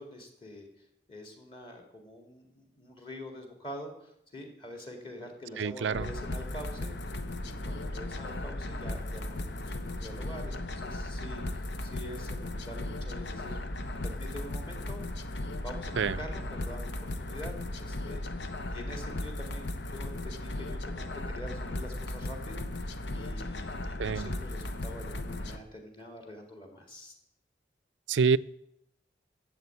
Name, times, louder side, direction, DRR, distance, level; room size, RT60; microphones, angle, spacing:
voice 1, 0.0-13.6 14.0-15.0 15.6-27.1, left 1 dB, 30° left, 3 dB, 2.0 m, -45 dB
voice 2, 5.6-6.1 16.0-16.2 24.0-24.3 28.1-28.4, right 5 dB, 90° right, 16 dB, 0.4 m, -27 dB
sound 1, 5.9-25.6, left 1 dB, 80° left, 1.0 m, -36 dB
12.5 x 7.5 x 8.3 m, 0.78 s
head